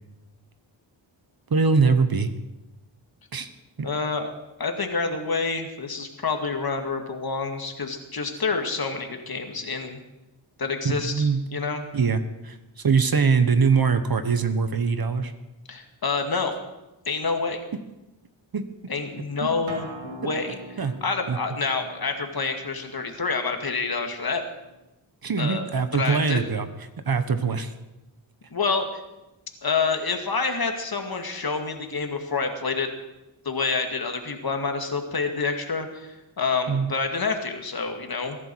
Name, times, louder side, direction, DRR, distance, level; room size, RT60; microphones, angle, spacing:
voice 1, 1.5-2.3 3.3-3.5 3.8-3.9 10.8-11.4 11.9-15.3 18.5-18.7 19.4-19.5 20.8-20.9 21.3-21.4 25.2-26.7 27.0-27.7 36.7-36.9, right 5 dB, 50° right, 10 dB, 1.3 m, -22 dB
voice 2, 3.8-4.3 4.6-10.0 10.6-11.9 15.7-16.6 17.1-17.6 18.9-24.4 25.4-25.6 25.9-26.5 28.5-28.9 29.6-32.9 33.4-38.4, left 4 dB, 50° left, 5 dB, 2.1 m, -28 dB
Acoustic guitar, 19.7-24.9, right 2 dB, 80° right, 2.5 m, -45 dB
21.0 x 11.0 x 4.7 m, 1.0 s
cardioid pair, 65°, 47 cm